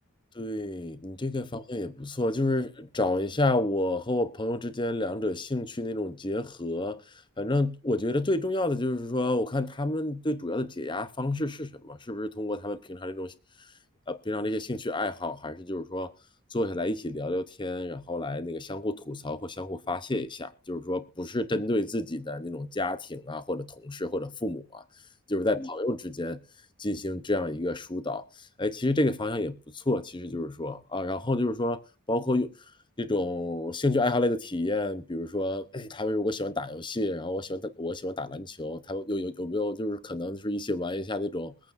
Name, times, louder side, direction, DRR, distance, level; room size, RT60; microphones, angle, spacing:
voice 1, 0.3-7.0 7.4-13.3 14.1-16.1 16.5-24.8 25.3-26.4 26.8-31.8 32.1-32.5 33.0-41.5, left 2 dB, 20° left, 0.8 m, -30 dB
23.0 x 8.8 x 2.6 m
head